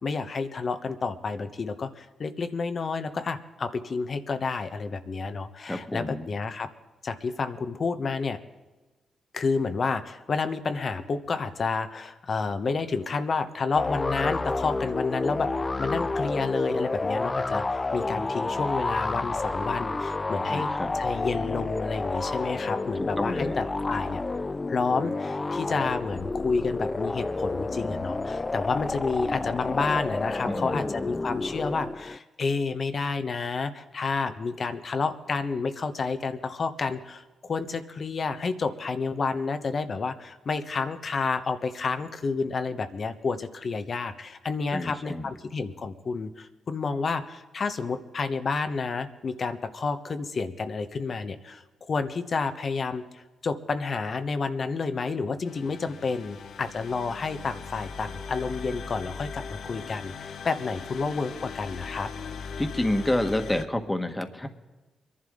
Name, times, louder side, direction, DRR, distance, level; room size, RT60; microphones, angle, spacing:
voice 1, 0.0-6.7 7.0-8.4 9.3-17.6 17.9-24.2 24.7-62.1, left 4 dB, 55° left, 9 dB, 1.1 m, -30 dB
voice 2, 5.7-6.3 20.5-20.9 23.0-23.6 30.5-31.0 44.7-45.3 62.6-64.5, left 1 dB, 15° left, 6 dB, 1.6 m, -29 dB
sound 1, 13.8-32.2, left 3 dB, 30° left, 0.4 m, -30 dB
sound 2, 55.4-63.6, left 5 dB, 75° left, 0.7 m, -39 dB
23.5 x 11.5 x 3.9 m, 1.2 s
supercardioid pair, 45°, 0 cm